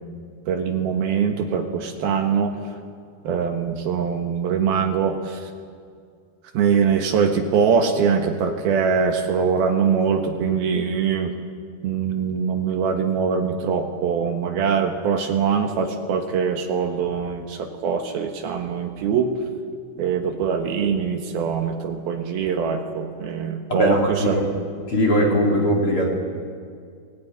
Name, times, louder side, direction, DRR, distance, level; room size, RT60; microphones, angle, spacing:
voice 1, 0.5-2.6 3.2-5.5 6.5-11.3 11.8-19.3 20.0-24.4, right 6 dB, 70° right, 4 dB, 3.0 m, -23 dB
voice 2, 23.7-24.5 24.9-26.1, equal, 35° left, -1 dB, 3.4 m, -20 dB
21.5 x 18.0 x 9.5 m, 2.2 s
omnidirectional pair, 4.9 m